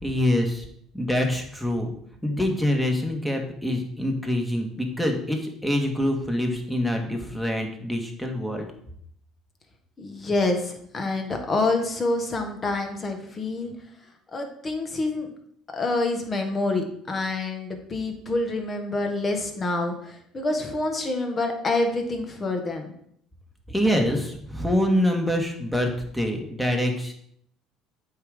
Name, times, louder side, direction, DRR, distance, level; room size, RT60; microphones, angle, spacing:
voice 1, 0.0-0.7 0.9-1.9 2.2-8.7 23.7-27.1, left 1 dB, 5° left, 2 dB, 1.7 m, -25 dB
voice 2, 10.0-13.7 14.3-15.3 15.7-22.9, left 2 dB, 35° left, 4 dB, 1.6 m, -27 dB
8.1 x 3.9 x 5.1 m, 0.68 s
hypercardioid pair, 75°, 0 cm